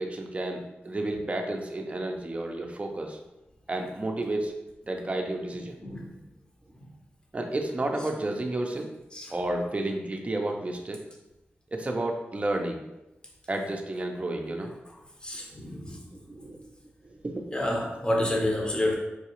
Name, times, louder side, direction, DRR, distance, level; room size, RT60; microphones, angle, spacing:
voice 1, 0.0-3.2 3.7-4.5 4.9-5.7 7.3-8.9 9.3-11.0 11.7-12.8 13.5-14.7 16.1-16.6 17.0-17.5, right 1 dB, 30° right, 2 dB, 0.6 m, -31 dB
voice 2, 5.8-6.1 6.8-6.9 9.1-9.3 15.2-16.0 17.5-19.0, left 1 dB, 20° left, -1 dB, 0.9 m, -29 dB
4.7 x 2.3 x 3.0 m, 0.97 s
cardioid pair, 50°, 4 cm